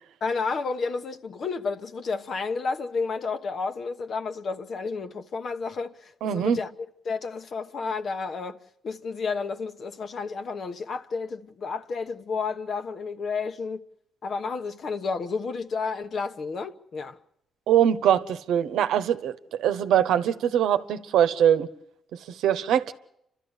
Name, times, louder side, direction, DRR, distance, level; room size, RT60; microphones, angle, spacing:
voice 1, 0.2-6.7 7.0-8.6 8.8-13.8 14.2-17.2, left 4 dB, 55° left, 1.1 m, -31 dB
voice 2, 6.2-6.6 17.7-21.7 22.4-22.9, right 10 dB, 80° right, 1.0 m, -22 dB
29.5 x 13.0 x 8.2 m
cardioid pair, 90°, 0 cm